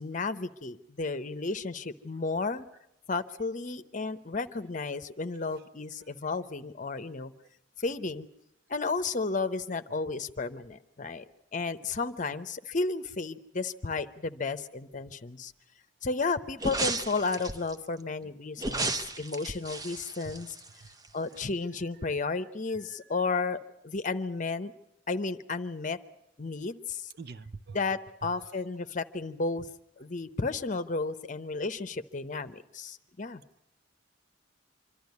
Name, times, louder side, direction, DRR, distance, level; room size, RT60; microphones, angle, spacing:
voice 1, 0.0-2.6 3.1-7.3 7.8-8.3 8.7-11.2 11.5-15.5 16.0-20.5 21.1-23.6 23.8-24.7 25.1-26.0 26.4-27.1 27.7-29.7 30.0-33.4, left 3 dB, 45° left, 12 dB, 0.8 m, -33 dB
sound 1, 16.6-17.7 18.6-21.1 21.4-21.5, right 2 dB, 20° right, 0.8 m, -33 dB
voice 2, 22.4-23.1 27.2-27.8 28.4-28.6, right 4 dB, 60° right, 13 dB, 0.7 m, -48 dB
25.5 x 12.5 x 9.4 m, 0.85 s
head